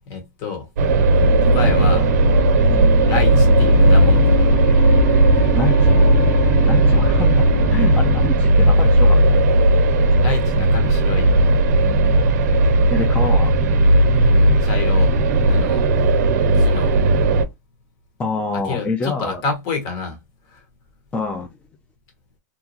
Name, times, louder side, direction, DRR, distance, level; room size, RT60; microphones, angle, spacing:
voice 1, 0.1-0.7 1.5-2.1 3.1-4.5 4.8-4.9 10.2-11.4 14.6-15.1 15.5-15.8 16.5-17.0 18.6-20.2 20.5-20.6, left 4 dB, 45° left, 1.3 m, -28 dB
sound 1, 0.8-17.5, right 1 dB, 65° right, 0.5 m, -15 dB
sound 2, 1.2-8.3, right 2 dB, 65° left, 1.4 m, -21 dB
voice 2, 5.6-6.0 6.6-9.5 12.9-13.5 18.2-19.4 21.1-21.5, left 3 dB, 15° left, 0.4 m, -26 dB
2.8 x 2.2 x 2.8 m
hypercardioid pair, 125°, 10 cm